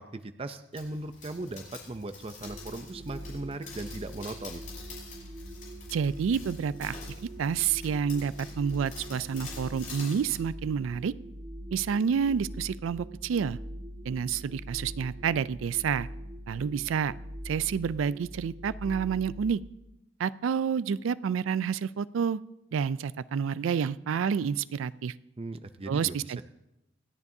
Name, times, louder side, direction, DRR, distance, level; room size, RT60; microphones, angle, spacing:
voice 1, 0.0-4.6 25.4-26.4, right 2 dB, 30° right, 9 dB, 0.5 m, -38 dB
sound 1, 0.7-10.4, left 4 dB, 45° left, 5.8 m, -47 dB
sound 2, 2.4-19.5, right 1 dB, 60° right, 2.5 m, -43 dB
voice 2, 5.9-7.0 7.4-11.1 11.7-13.6 14.1-16.1 16.5-17.1 17.4-19.6 20.2-22.4 22.7-25.1 25.9-26.4, right 7 dB, 85° right, 18 dB, 0.3 m, -29 dB
27.5 x 9.6 x 2.7 m, 0.90 s
head